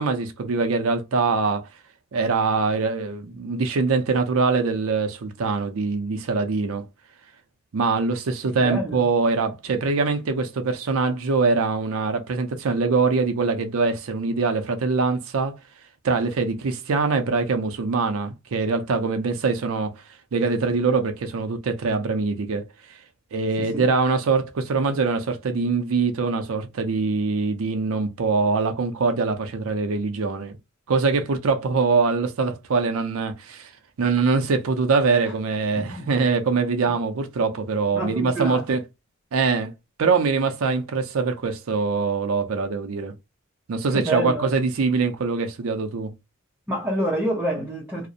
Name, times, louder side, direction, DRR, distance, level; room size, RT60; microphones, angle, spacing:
voice 1, 0.0-1.7 2.1-6.8 7.7-15.6 16.0-20.0 20.3-22.6 23.3-30.6 30.9-33.7 34.0-38.8 39.3-39.7 40.0-43.1 43.7-46.1, right 4 dB, 80° right, 0.5 m, -23 dB
voice 2, 8.6-9.0 23.6-23.9 35.8-36.1 37.9-38.6 43.9-44.5 46.7-48.1, right 1 dB, 10° right, 0.6 m, -27 dB
2.4 x 2.0 x 2.6 m
head